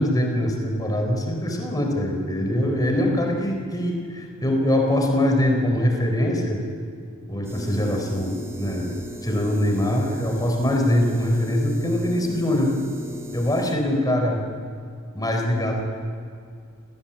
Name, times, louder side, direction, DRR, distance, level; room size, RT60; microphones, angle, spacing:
voice 1, 0.0-6.6 7.3-12.7 13.3-14.4 15.1-15.8, left 1 dB, 20° left, 2 dB, 4.1 m, -23 dB
sound 1, 7.4-13.8, equal, 10° right, 3.1 m, -38 dB
25.5 x 19.0 x 8.9 m, 2.3 s
head